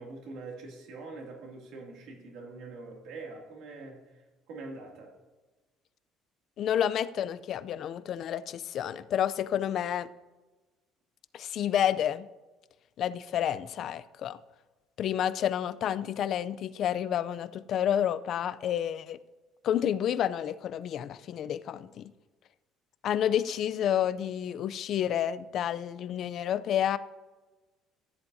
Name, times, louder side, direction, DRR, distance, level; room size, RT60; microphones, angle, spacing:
voice 1, 0.0-4.1 4.5-5.2, right 3 dB, 60° right, 1 dB, 2.3 m, -44 dB
voice 2, 6.6-10.1 11.3-12.3 13.0-14.4 15.0-19.2 19.6-22.1 23.0-27.0, left 10 dB, 40° left, 15 dB, 0.4 m, -29 dB
14.0 x 10.5 x 2.7 m, 1.2 s
cardioid pair, 175°, 0 cm